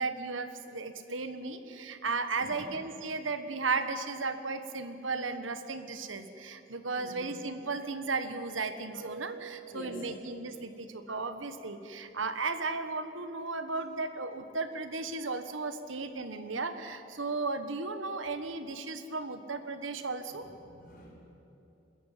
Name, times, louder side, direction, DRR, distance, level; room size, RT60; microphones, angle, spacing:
voice 1, 0.0-20.5, right 3 dB, 85° right, 9 dB, 1.4 m, -35 dB
voice 2, 6.9-7.3 9.7-10.0 20.6-21.1, equal, 50° left, -3 dB, 6.2 m, -46 dB
28.0 x 13.5 x 9.3 m, 2.9 s
head